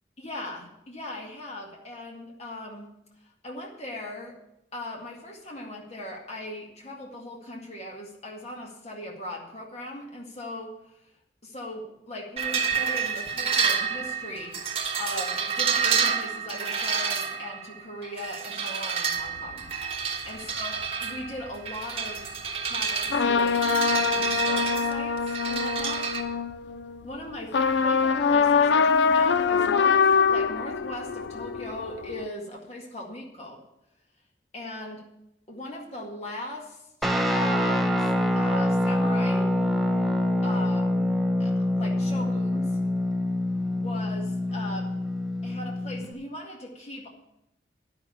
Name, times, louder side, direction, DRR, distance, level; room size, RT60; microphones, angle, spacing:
voice 1, 0.2-2.9 3.2-4.4 4.7-11.0 11.4-22.3 22.6-26.1 27.0-27.6 27.8-33.6 34.5-35.1 35.5-38.1 38.4-39.5 40.4-41.1 41.4-42.8 43.7-45.0 45.4-47.1, left 1 dB, 35° left, -1 dB, 2.0 m, -39 dB
sound 1, 12.4-26.2, right 6 dB, 35° right, 1.3 m, -29 dB
sound 2, 19.3-19.7 20.9-21.0 23.1-27.0 27.5-32.3, left 5 dB, 75° left, 0.4 m, -24 dB
Guitar, 37.0-46.1, left 1 dB, ahead, 0.7 m, -25 dB
10.5 x 6.2 x 8.4 m, 0.82 s
head